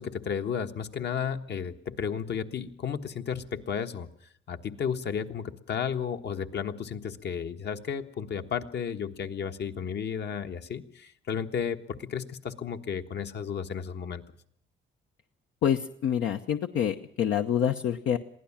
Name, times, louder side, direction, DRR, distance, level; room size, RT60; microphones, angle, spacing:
voice 1, 0.0-4.1 4.5-14.2, left 7 dB, 60° left, 7 dB, 1.5 m, -33 dB
voice 2, 15.6-18.2, left 9 dB, 75° left, 5 dB, 1.0 m, -27 dB
22.5 x 16.0 x 7.4 m, 0.67 s
cardioid pair, 90°, 20 cm